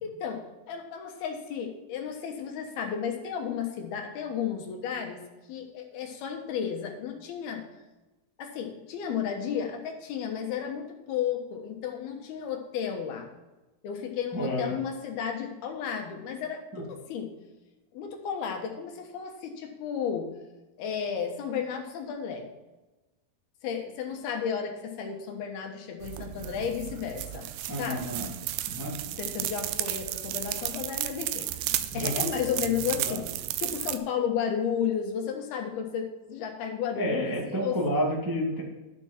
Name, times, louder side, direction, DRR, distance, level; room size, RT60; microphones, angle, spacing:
voice 1, 0.0-5.2 5.5-7.7 8.4-13.3 13.8-17.3 17.9-20.3 20.8-22.5 23.6-27.5 27.8-28.2 29.1-33.3 33.6-37.8, left 7 dB, 75° left, 3 dB, 3.1 m, -33 dB
voice 2, 14.3-14.7 16.7-16.8 27.7-28.3 28.7-28.9 31.9-32.1 32.9-33.1 36.9-38.6, equal, 10° right, -4 dB, 1.2 m, -30 dB
sound 1, 26.0-34.0, right 14 dB, 80° right, 2.4 m, -33 dB
12.0 x 7.1 x 4.4 m, 1.1 s
omnidirectional pair, 4.7 m